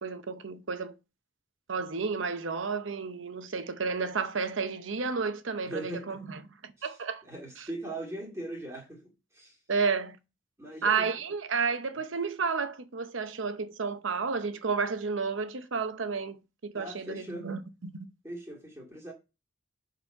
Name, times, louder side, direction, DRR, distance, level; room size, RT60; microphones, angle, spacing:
voice 1, 0.0-0.9 1.7-7.2 7.6-7.7 9.7-10.2 10.8-17.9, right 5 dB, 80° right, 0.8 m, -31 dB
voice 2, 5.6-6.2 6.8-6.9 7.2-9.0 9.3-9.6 10.6-11.1 16.7-17.5 18.2-19.1, right 1 dB, 15° right, 2.2 m, -40 dB
7.1 x 4.1 x 5.2 m
head